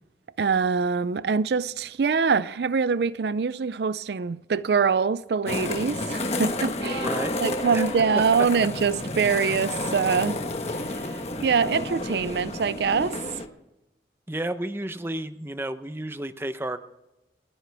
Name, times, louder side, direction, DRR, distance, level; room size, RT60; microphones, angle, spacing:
voice 1, 0.4-7.1 7.4-10.4 10.9-13.2, right 5 dB, 70° right, 0.4 m, -24 dB
sound 1, 5.5-13.5, left 2 dB, 35° left, 1.2 m, -30 dB
voice 2, 7.0-7.3 7.7-7.9 14.3-16.8, right 1 dB, 15° right, 0.7 m, -31 dB
29.0 x 9.9 x 3.4 m
head